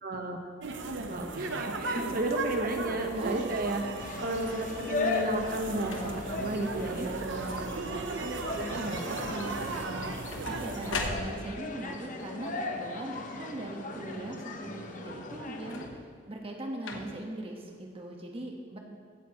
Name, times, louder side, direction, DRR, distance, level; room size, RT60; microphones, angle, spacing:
voice 1, 0.0-0.4 1.1-10.1, right 1 dB, 50° right, 3 dB, 1.2 m, -34 dB
sound 1, 0.6-11.1, right 3 dB, 70° right, 0.8 m, -36 dB
voice 2, 3.2-3.5 6.9-7.1 10.5-18.8, right 1 dB, 30° right, 1 dB, 1.4 m, -40 dB
sound 2, 4.0-15.9, left 3 dB, 45° left, 0.9 m, -38 dB
sound 3, 4.9-5.3 5.8-6.4 7.0-7.4 7.6-8.2 9.9-11.7 15.6-16.2 16.8-17.4 18.2-18.3, left 3 dB, 85° left, 1.1 m, -40 dB
16.0 x 9.2 x 3.1 m, 2.3 s
head